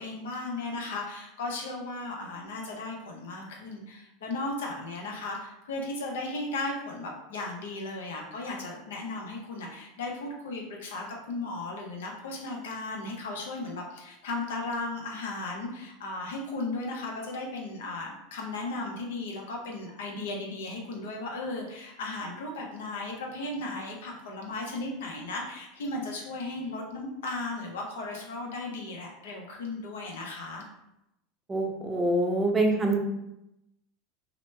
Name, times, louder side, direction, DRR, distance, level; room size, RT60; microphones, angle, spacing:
voice 1, 0.0-30.6, left 2 dB, 85° left, 0 dB, 0.7 m, -36 dB
voice 2, 31.5-33.0, right 2 dB, 20° right, 2 dB, 0.5 m, -25 dB
2.9 x 2.1 x 3.2 m, 0.87 s
supercardioid pair, 110°, 0 cm